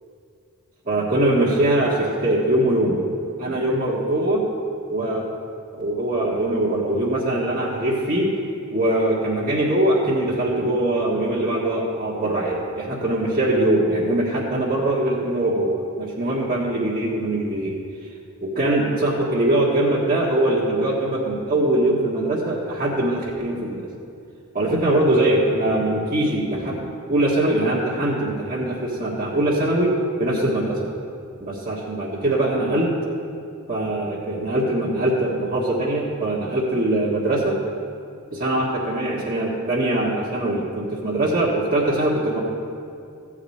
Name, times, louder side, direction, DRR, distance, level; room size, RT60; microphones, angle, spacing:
voice 1, 0.9-3.0 3.4-4.4 4.9-5.3 5.7-8.3 8.7-17.7 18.4-23.9 24.5-29.9 30.2-30.8 31.4-32.9 33.7-37.6 38.3-42.4, right 1 dB, 40° right, -5 dB, 1.6 m, -22 dB
14.0 x 5.0 x 8.6 m, 2.5 s
head